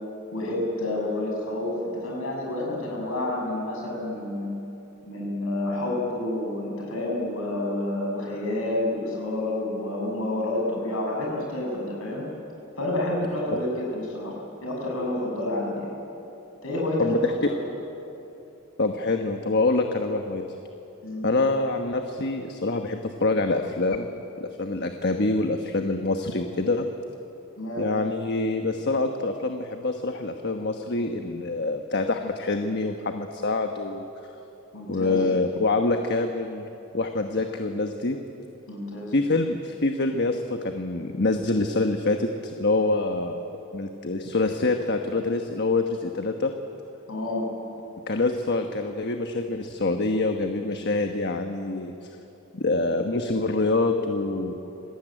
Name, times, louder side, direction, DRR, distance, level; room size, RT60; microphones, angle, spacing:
voice 1, 0.3-4.5 5.0-12.3 12.8-15.9 16.6-17.6 21.0-21.3 27.6-27.9 34.7-35.2 38.7-39.1 47.1-47.5, left 1 dB, 70° left, -1 dB, 6.8 m, -29 dB
voice 2, 17.0-17.5 18.8-20.4 21.2-24.1 24.4-26.9 27.8-34.1 34.9-36.7 36.9-38.2 39.1-43.5 43.7-46.5 48.1-52.2 52.5-54.6, left 2 dB, 50° left, 5 dB, 1.2 m, -26 dB
26.5 x 19.0 x 9.1 m, 2.9 s
head